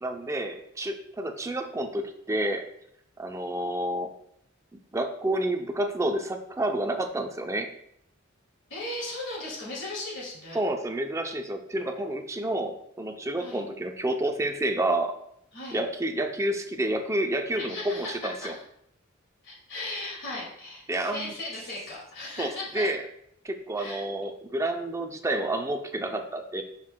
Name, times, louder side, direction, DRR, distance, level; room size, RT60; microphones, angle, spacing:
voice 1, 0.0-2.6 3.2-4.1 4.7-7.7 10.5-15.1 15.7-18.5 20.9-21.3 22.4-23.0 23.4-26.6, right 1 dB, 15° right, 6 dB, 0.5 m, -29 dB
voice 2, 8.7-10.6 13.4-13.6 15.5-15.8 17.6-18.1 18.4-18.6 19.4-22.9 23.8-24.1, left 2 dB, 60° left, -6 dB, 2.1 m, -37 dB
7.5 x 5.8 x 2.2 m, 0.74 s
head